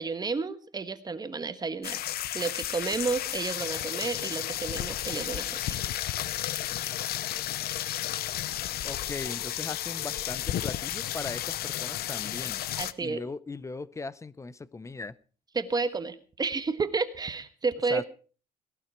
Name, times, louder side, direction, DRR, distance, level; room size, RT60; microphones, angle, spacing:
voice 1, 0.0-5.8 12.8-13.2 15.5-18.0, right 4 dB, 25° right, 1.3 m, -31 dB
sound 1, 1.8-12.9, left 13 dB, 65° left, 0.7 m, -33 dB
voice 2, 8.8-12.6 13.0-15.1 17.9-18.0, left 3 dB, 15° left, 0.6 m, -38 dB
18.0 x 12.0 x 4.5 m
cardioid pair, 110°, 17 cm